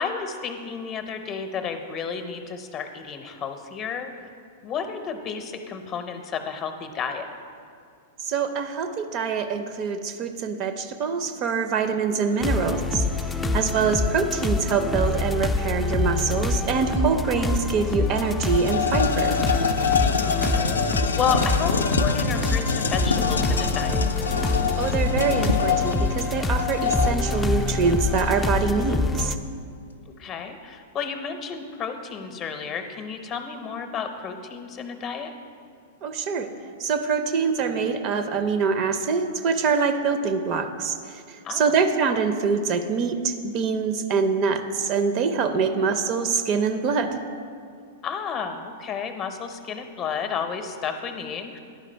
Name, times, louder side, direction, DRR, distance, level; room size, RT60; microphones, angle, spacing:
voice 1, 0.0-4.1 4.6-7.3 13.4-13.8 17.3-17.5 20.2-20.8 21.2-24.1 30.2-35.3 41.4-41.8 45.9-46.0 48.0-51.6, left 6 dB, 35° left, 7 dB, 0.7 m, -31 dB
voice 2, 8.2-19.4 24.8-29.4 36.0-36.5 36.8-47.2, right 5 dB, 45° right, 9 dB, 0.5 m, -25 dB
sound 1, 12.4-29.4, left 3 dB, 10° left, 0.4 m, -26 dB
sound 2, 17.5-17.6 17.9-28.6, left 5 dB, 85° left, 0.4 m, -25 dB
10.5 x 4.9 x 4.4 m, 2.3 s
hypercardioid pair, 100°, 0 cm